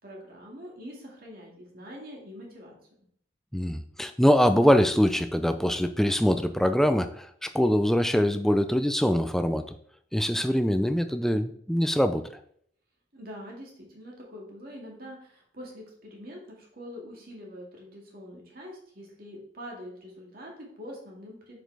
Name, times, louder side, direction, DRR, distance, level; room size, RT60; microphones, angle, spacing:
voice 1, 0.0-2.8 13.1-21.6, equal, 50° right, -2 dB, 2.1 m, -44 dB
voice 2, 3.5-9.6 10.1-12.3, equal, ahead, 9 dB, 0.3 m, -23 dB
7.5 x 5.2 x 3.4 m, 0.64 s
head